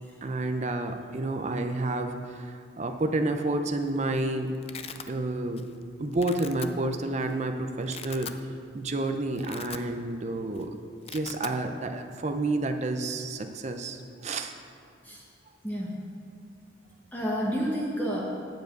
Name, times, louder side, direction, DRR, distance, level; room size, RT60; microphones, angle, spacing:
voice 1, 0.2-4.5 5.1-5.7 6.0-8.3 8.7-10.8 11.1-14.5, right 2 dB, 40° right, 6 dB, 0.5 m, -30 dB
Domestic sounds home sounds, 3.6-4.0 4.2-5.1 5.6-5.8 6.1-6.7 7.3-7.4 7.8-8.4 8.8-8.9 9.3-10.2 10.5-10.6 10.9-11.6, left 7 dB, 35° left, 0.4 m, -41 dB
voice 2, 15.6-15.9 17.1-18.2, equal, 10° left, -5 dB, 1.1 m, -30 dB
9.0 x 5.1 x 7.8 m, 2.2 s
head